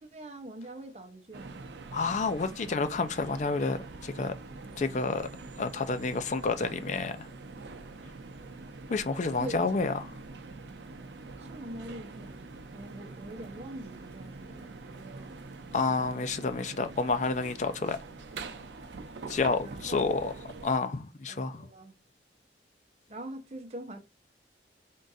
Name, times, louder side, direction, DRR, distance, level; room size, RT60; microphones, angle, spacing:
voice 1, 0.0-1.6 6.9-7.1 9.4-9.9 11.4-12.4 12.7-15.4 16.6-16.8 19.6-20.2 21.3-21.9 23.1-24.0, right 1 dB, 40° right, 0.7 m, -44 dB
sound 1, 1.3-20.8, right 3 dB, 80° right, 0.6 m, -45 dB
voice 2, 1.9-4.3 4.8-5.3 5.6-7.3 8.9-9.9 15.7-18.0 19.3-20.3 20.6-21.7, left 3 dB, 40° left, 0.4 m, -29 dB
3.7 x 2.5 x 4.0 m
head